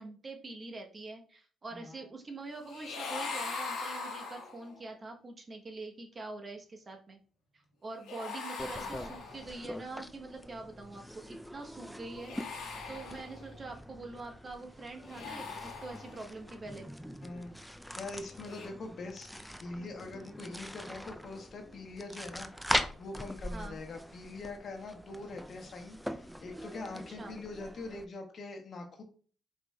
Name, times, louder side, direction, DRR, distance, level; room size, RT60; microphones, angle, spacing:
voice 1, 0.0-7.2 7.5-16.9 23.5-23.8 26.9-27.3, right 3 dB, 40° right, 3 dB, 0.9 m, -45 dB
voice 2, 1.7-2.1 17.2-17.5 18.0-29.0, left 2 dB, 55° left, 3 dB, 0.9 m, -43 dB
sound 1, 2.7-4.8 8.0-9.7 12.1-13.6 15.0-16.4 18.4-18.7, left 4 dB, 80° left, 1.0 m, -41 dB
sound 2, 8.6-28.0, equal, ahead, 0.4 m, -42 dB
4.7 x 3.7 x 2.2 m, 0.43 s
supercardioid pair, 70°, 0 cm